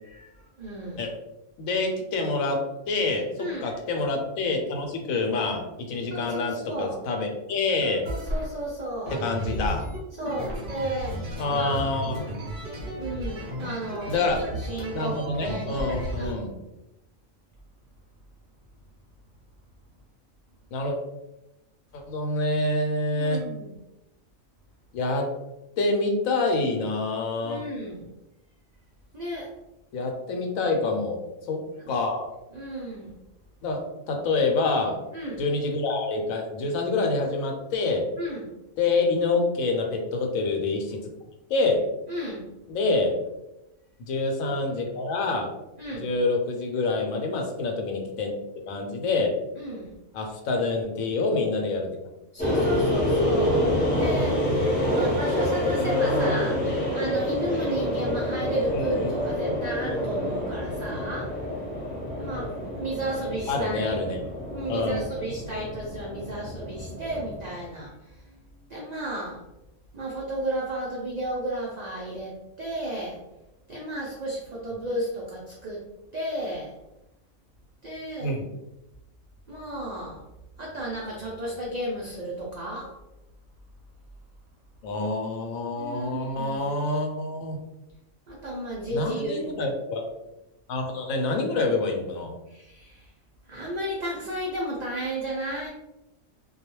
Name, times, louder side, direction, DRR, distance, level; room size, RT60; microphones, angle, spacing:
voice 1, 0.0-1.0 3.4-3.8 6.1-7.0 7.8-9.2 10.2-11.2 11.5-11.9 12.9-16.3 23.1-23.7 27.4-28.1 29.1-29.5 31.8-32.0 32.5-33.2 35.1-35.4 38.2-38.5 42.1-42.5 45.8-46.1 49.6-49.9 52.3-54.6 54.9-61.5 62.1-63.9 64.5-68.4 68.7-69.4 69.9-73.2 73.7-75.8 76.1-76.7 77.8-78.3 79.5-80.2 80.6-82.9 85.8-86.6 88.3-89.5 92.5-93.1 93.5-95.7, right 1 dB, 85° right, -4 dB, 0.3 m, -33 dB
voice 2, 1.6-2.6 2.9-8.0 9.1-9.9 11.4-12.2 14.1-14.4 14.9-16.5 20.7-21.0 21.9-23.4 24.9-25.3 25.8-27.6 29.9-31.2 31.5-31.6 31.9-32.3 33.6-33.8 34.1-35.0 35.4-38.0 38.8-41.0 41.5-41.8 42.7-43.1 44.0-45.5 45.9-48.4 48.7-49.3 50.1-51.9 55.8-56.7 58.7-59.1 63.5-64.2 64.7-65.0 78.2-78.4 84.8-87.6 88.9-90.1 90.7-92.3, left 3 dB, 85° left, 3 dB, 1.0 m, -27 dB
sound 1, 7.8-8.5 9.0-16.3, equal, 50° right, 0.7 m, -33 dB
sound 2, 52.4-67.6, left 1 dB, 10° left, 0.7 m, -27 dB
2.3 x 2.2 x 3.0 m, 0.93 s
omnidirectional pair, 1.4 m